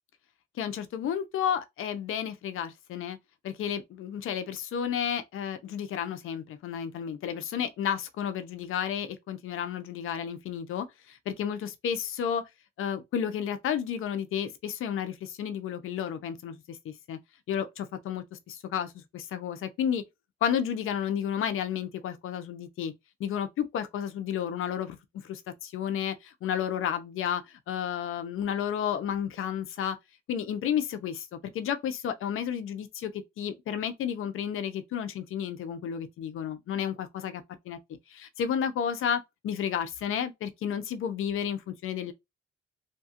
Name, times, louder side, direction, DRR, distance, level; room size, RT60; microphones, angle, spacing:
voice 1, 0.6-3.2 3.4-12.4 12.8-17.2 17.5-20.0 20.4-22.9 23.2-25.0 25.2-30.0 30.3-33.1 33.4-37.8 38.1-42.1, left 8 dB, 85° left, 0.5 m, -32 dB
2.8 x 2.3 x 2.8 m
cardioid pair, 95°, 21 cm